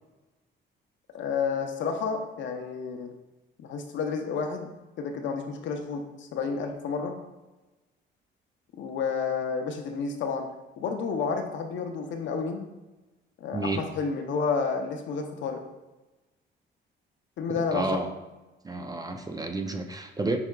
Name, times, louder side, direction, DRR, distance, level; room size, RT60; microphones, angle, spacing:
voice 1, 1.1-3.1 3.6-4.7 5.0-7.2 8.8-10.5 10.8-12.7 13.4-15.6 17.4-18.0, left 5 dB, 70° left, 4 dB, 0.6 m, -30 dB
voice 2, 13.5-13.8 17.5-18.1 18.6-20.4, right 2 dB, 20° right, 5 dB, 0.3 m, -30 dB
5.5 x 3.5 x 2.2 m, 1.1 s
cardioid pair, 90°, 20 cm